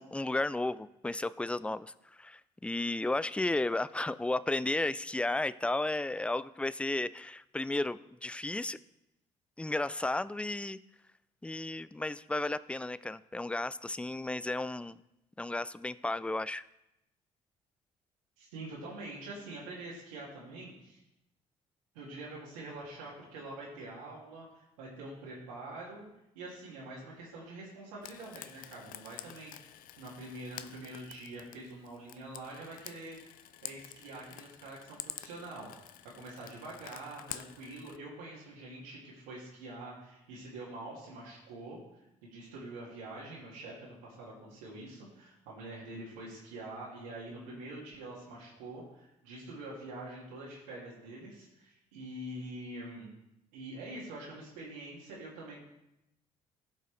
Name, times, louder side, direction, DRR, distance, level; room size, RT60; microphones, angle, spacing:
voice 1, 0.0-8.8 9.6-10.8 11.4-15.0 15.4-16.6, left 2 dB, 5° left, 17 dB, 0.4 m, -33 dB
voice 2, 18.4-21.0 21.9-26.1 26.3-41.8 42.2-53.1 53.5-55.6, right 2 dB, 85° right, -7 dB, 2.3 m, -45 dB
Frying (food), 28.0-38.0, left 13 dB, 65° left, 0.5 m, -48 dB
16.0 x 5.4 x 3.4 m, 0.87 s
hypercardioid pair, 55°, 15 cm